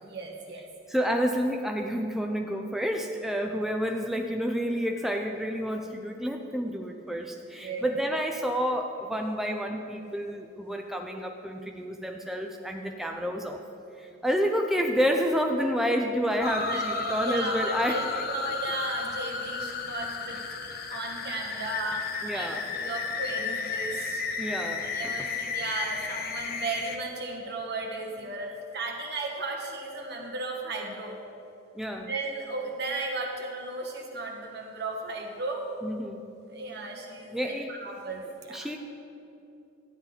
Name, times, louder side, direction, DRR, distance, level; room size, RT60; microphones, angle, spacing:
voice 1, 0.0-0.6 7.6-8.0 12.8-12.9 16.6-20.4 20.9-22.1 22.3-24.2 24.8-31.2 31.9-35.6 36.5-38.7, right 3 dB, 60° right, 1 dB, 1.5 m, -35 dB
voice 2, 0.9-13.6 14.0-18.0 22.2-22.7 24.4-25.3 31.8-32.1 35.8-36.2 37.3-37.7 38.5-38.8, equal, ahead, 3 dB, 0.4 m, -29 dB
sound 1, 16.4-27.0, left 5 dB, 55° left, 0.8 m, -33 dB
12.5 x 9.6 x 4.0 m, 2.7 s
head